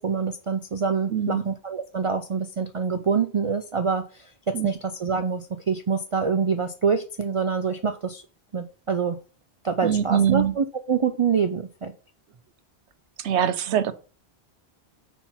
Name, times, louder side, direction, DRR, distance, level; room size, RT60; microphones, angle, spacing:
voice 1, 0.0-8.2 8.5-9.2 9.6-11.9, right 5 dB, 45° right, 0.4 m, -26 dB
voice 2, 1.1-1.4 4.5-4.7 9.8-10.5 13.2-13.9, right 9 dB, 80° right, 1.0 m, -22 dB
5.5 x 4.4 x 5.8 m
omnidirectional pair, 1.1 m